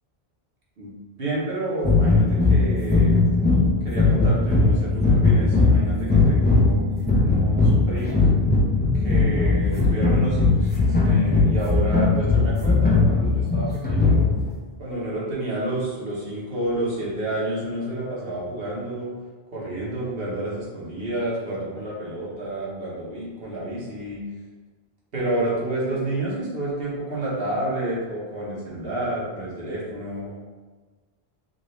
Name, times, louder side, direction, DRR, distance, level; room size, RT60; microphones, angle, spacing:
voice 1, 0.8-3.1 3.8-6.9 7.1-8.2 8.9-10.7 11.0-14.3 14.8-19.1 19.5-24.2 25.1-30.3, right 1 dB, 65° right, -6 dB, 1.4 m, -30 dB
sound 1, 1.8-14.5, left 3 dB, 10° left, 0.6 m, -19 dB
5.0 x 2.6 x 3.2 m, 1.4 s
omnidirectional pair, 1.1 m